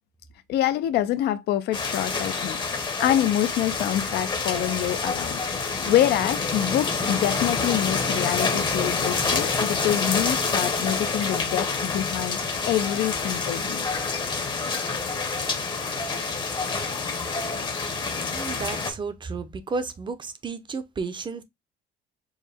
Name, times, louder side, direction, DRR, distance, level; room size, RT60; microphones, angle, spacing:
voice 1, 0.5-5.4 5.8-12.4 12.7-13.8, left 12 dB, 75° left, 0.5 m, -26 dB
sound 1, 1.7-18.9, left 4 dB, 25° left, 0.8 m, -27 dB
voice 2, 18.2-21.4, right 4 dB, 30° right, 0.6 m, -32 dB
4.6 x 2.1 x 3.4 m
cardioid pair, 110°, 17 cm